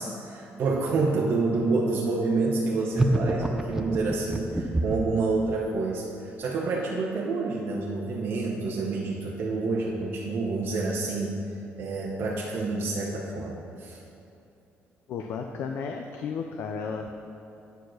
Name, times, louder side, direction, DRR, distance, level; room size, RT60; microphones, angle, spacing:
voice 1, 0.0-11.4 11.8-14.0, right 3 dB, 50° right, -3 dB, 0.8 m, -28 dB
sound 1, 2.9-5.2, right 2 dB, 10° right, 0.4 m, -26 dB
voice 2, 15.1-17.1, left 5 dB, 60° left, 4 dB, 0.4 m, -33 dB
9.1 x 4.7 x 6.2 m, 2.7 s
cardioid pair, 175°, 5 cm